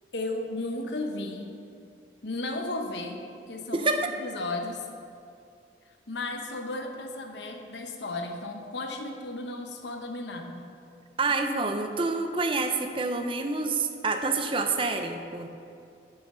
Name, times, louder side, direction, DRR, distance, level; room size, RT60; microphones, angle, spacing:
voice 1, 0.1-1.6 2.2-3.9 4.2-4.9 6.1-10.7, left 2 dB, 80° left, 3 dB, 1.0 m, -34 dB
voice 2, 3.7-4.1 11.2-15.5, right 3 dB, 30° right, 6 dB, 0.6 m, -27 dB
10.5 x 5.7 x 5.6 m, 2.5 s
head